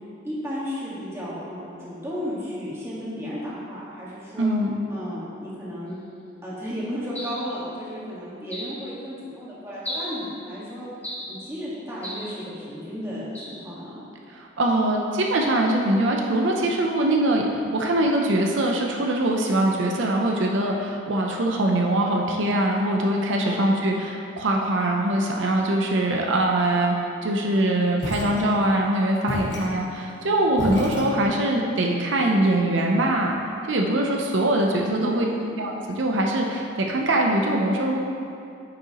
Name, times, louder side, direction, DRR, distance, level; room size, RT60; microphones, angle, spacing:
voice 1, 0.2-4.5 4.9-6.0 6.4-10.8 11.3-14.0 23.4-23.9 35.0-35.8, equal, 15° right, -9 dB, 1.6 m, -34 dB
voice 2, 4.4-4.8 14.3-27.0 27.2-33.4 33.7-35.3 35.6-38.0, right 1 dB, 75° right, 1 dB, 0.6 m, -22 dB
sound 1, 7.1-7.5 8.5-8.8 9.8-10.2 11.0-11.3 12.0-12.3 13.3-13.6, equal, 10° left, 1.3 m, -34 dB
sound 2, 28.0-28.9 29.3-31.6, left 1 dB, 60° left, 1.2 m, -33 dB
9.3 x 5.5 x 3.0 m, 2.5 s
head